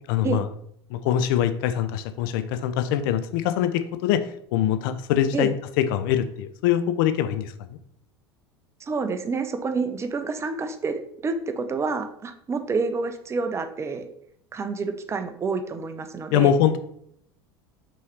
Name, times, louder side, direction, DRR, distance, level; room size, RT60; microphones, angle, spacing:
voice 1, 0.1-0.4 0.9-4.2 4.5-7.5 16.3-16.8, left 10 dB, 55° left, 11 dB, 0.5 m, -23 dB
voice 2, 8.8-14.1 14.5-16.5, right 4 dB, 20° right, 8 dB, 0.5 m, -28 dB
5.5 x 3.1 x 3.1 m, 0.69 s
figure-of-eight pair, 75°, 13 cm